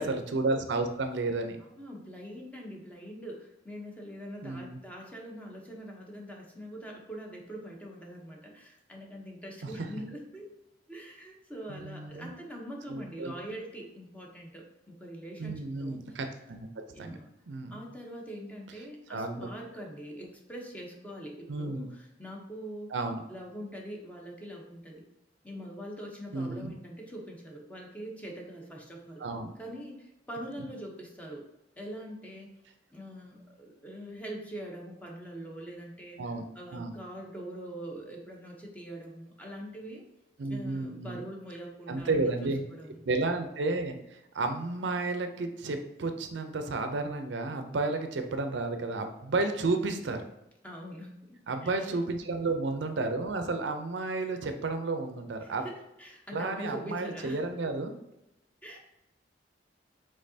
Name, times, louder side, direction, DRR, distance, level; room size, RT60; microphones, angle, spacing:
voice 1, 0.0-1.6 4.4-4.8 11.7-12.3 12.9-13.3 15.4-17.2 17.5-17.8 19.1-19.5 21.5-21.9 22.9-23.2 26.3-26.7 29.2-29.5 36.2-36.4 36.7-37.0 40.4-41.2 41.9-42.6 43.0-50.2 51.5-55.6 56.3-57.9, right 3 dB, 75° right, 6 dB, 0.5 m, -32 dB
voice 2, 1.8-10.5 10.9-16.2 16.9-17.3 17.7-22.9 23.3-25.0 25.4-29.2 29.6-31.5 31.8-32.5 32.9-40.0 40.5-42.2 42.4-43.0 50.6-51.9 55.4-57.4 58.6-58.8, equal, 10° left, -1 dB, 0.8 m, -43 dB
5.2 x 3.6 x 2.7 m, 0.87 s
head